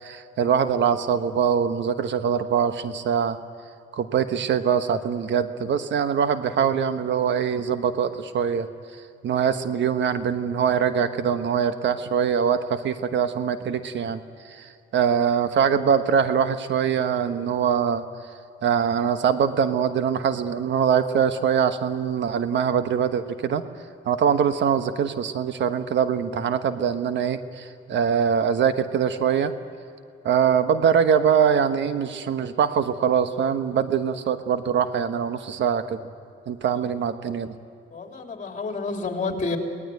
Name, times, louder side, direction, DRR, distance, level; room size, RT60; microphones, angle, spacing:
voice 1, 0.0-3.4 3.9-8.7 9.2-18.0 18.6-23.6 24.0-29.5 30.2-36.0 36.5-37.6, right 7 dB, 65° right, 9 dB, 1.3 m, -23 dB
voice 2, 37.9-39.6, left 3 dB, 40° left, 3 dB, 3.4 m, -29 dB
24.0 x 18.5 x 9.3 m, 2.5 s
cardioid pair, 90°, 20 cm